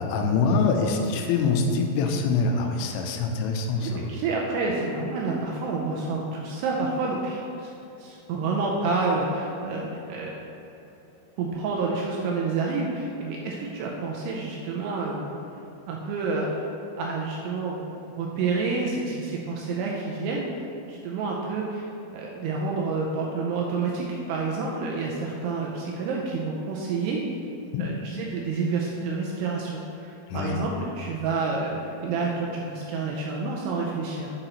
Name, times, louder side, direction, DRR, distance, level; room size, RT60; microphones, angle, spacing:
voice 1, 0.0-4.0 27.7-27.8 30.3-30.6, left 4 dB, 90° left, 3 dB, 3.0 m, -24 dB
voice 2, 3.8-7.7 8.0-10.4 11.4-15.3 15.9-16.7 17.0-20.5 20.8-21.9 22.1-27.2 27.8-34.3, right 4 dB, 85° right, -2 dB, 2.4 m, -29 dB
7.7 x 7.3 x 3.0 m, 3.0 s
omnidirectional pair, 5.3 m